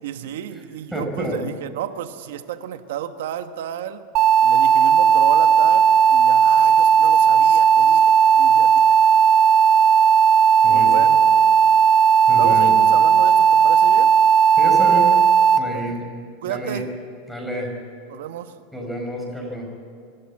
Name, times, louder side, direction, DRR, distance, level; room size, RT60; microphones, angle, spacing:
voice 1, 0.0-4.0 4.4-8.9 10.7-11.2 12.3-14.1 15.7-15.8 16.4-16.8 18.1-18.5, right 10 dB, 80° right, 9 dB, 1.3 m, -32 dB
voice 2, 0.9-1.4 10.6-10.9 12.3-12.7 14.5-15.1 15.6-16.1 16.5-16.8 17.3-17.7 18.7-19.8, equal, ahead, 0 dB, 4.9 m, -29 dB
sound 1, 4.1-15.6, right 7 dB, 40° right, 0.7 m, -15 dB
25.0 x 12.5 x 8.5 m, 2.3 s
supercardioid pair, 150°, 0 cm